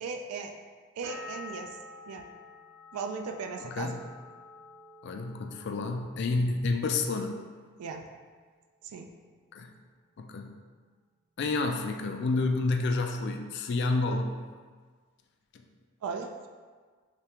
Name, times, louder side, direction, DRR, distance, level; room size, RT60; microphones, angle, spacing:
voice 1, 0.0-0.5 1.0-1.7 2.1-2.3 2.9-4.0 7.8-8.0 8.8-9.1 16.0-16.5, right 5 dB, 85° right, 4 dB, 0.3 m, -37 dB
sound 1, 1.0-6.7 7.0-7.7, left 3 dB, 50° right, 1.0 m, -49 dB
voice 2, 3.6-4.0 5.0-7.4 9.5-9.7 10.2-10.6 11.4-14.4 15.5-15.6, left 3 dB, 50° left, 4 dB, 0.3 m, -29 dB
3.4 x 3.3 x 2.9 m, 1.5 s
head